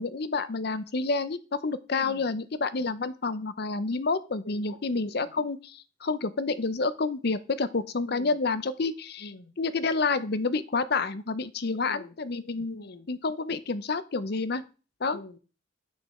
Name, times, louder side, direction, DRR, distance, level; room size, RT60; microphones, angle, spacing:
voice 1, 0.0-12.8 13.1-14.6 15.0-15.2, left 3 dB, 55° left, 0.6 m, -29 dB
voice 2, 4.4-4.8 5.1-5.3 8.0-8.4 9.2-9.5 11.7-12.1 12.7-13.1 15.1-15.4, left 2 dB, 85° left, 1.0 m, -45 dB
8.3 x 6.3 x 4.2 m
head